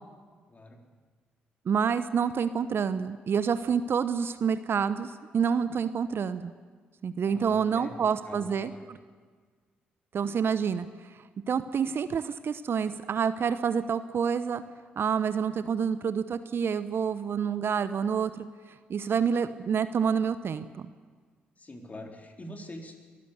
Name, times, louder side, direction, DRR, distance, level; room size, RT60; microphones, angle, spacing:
voice 1, 0.5-0.8 7.3-8.9 21.6-23.0, left 1 dB, 30° left, 2 dB, 3.6 m, -45 dB
voice 2, 1.7-6.5 7.0-9.0 10.1-10.9 11.5-14.6 15.0-18.5 18.9-20.9, right 7 dB, 50° right, 13 dB, 0.8 m, -28 dB
22.5 x 14.0 x 8.2 m, 1.5 s
figure-of-eight pair, 40°, 5 cm